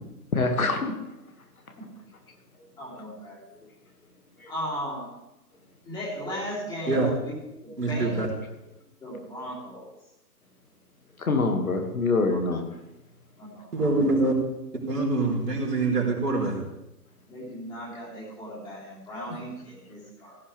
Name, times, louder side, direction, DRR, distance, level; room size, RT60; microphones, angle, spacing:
voice 1, 0.3-0.9 4.4-4.5 11.2-12.6, left 3 dB, 60° left, 4 dB, 2.1 m, -25 dB
voice 2, 2.8-3.4 4.5-5.1 5.8-8.3 9.0-9.9 12.3-12.4 13.4-13.9 17.3-20.4, equal, 10° left, -6 dB, 3.3 m, -36 dB
voice 3, 7.8-8.3 13.7-14.3 14.9-16.6, right 2 dB, 70° right, -2 dB, 4.3 m, -24 dB
16.5 x 11.5 x 3.4 m, 0.91 s
figure-of-eight pair, 140°, 49 cm